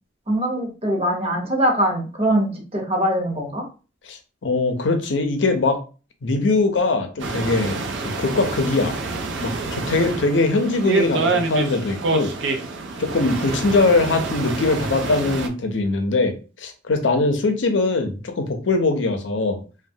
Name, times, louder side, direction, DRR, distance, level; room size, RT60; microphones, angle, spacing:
voice 1, 0.3-3.6, right 1 dB, 30° right, 1 dB, 0.8 m, -22 dB
voice 2, 4.4-5.8 6.2-9.0 9.4-12.3 13.0-19.6, left 3 dB, 70° left, 6 dB, 0.6 m, -21 dB
sound 1, 7.2-15.5, right 3 dB, 65° right, 0.5 m, -27 dB
3.1 x 2.2 x 2.7 m, 0.35 s
head